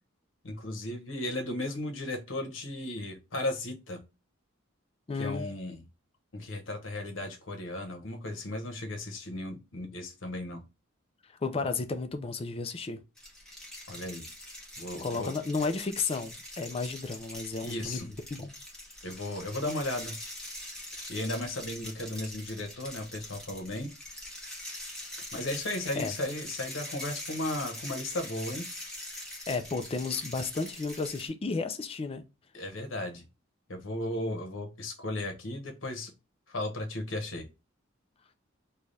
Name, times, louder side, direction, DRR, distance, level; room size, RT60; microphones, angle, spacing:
voice 1, 0.4-4.0 5.2-5.8 6.3-10.6 13.9-14.2 14.8-15.3 17.6-18.1 19.0-20.2 20.9-23.9 25.3-28.7 32.5-33.2 33.7-36.1 36.5-37.5, left 1 dB, 80° left, 0.9 m, -35 dB
voice 2, 5.1-5.5 11.4-13.0 15.0-18.5 25.9-26.1 29.5-32.2, left 4 dB, 30° left, 0.4 m, -33 dB
sound 1, 13.2-31.3, left 1 dB, 5° left, 0.9 m, -43 dB
3.3 x 2.3 x 3.9 m
head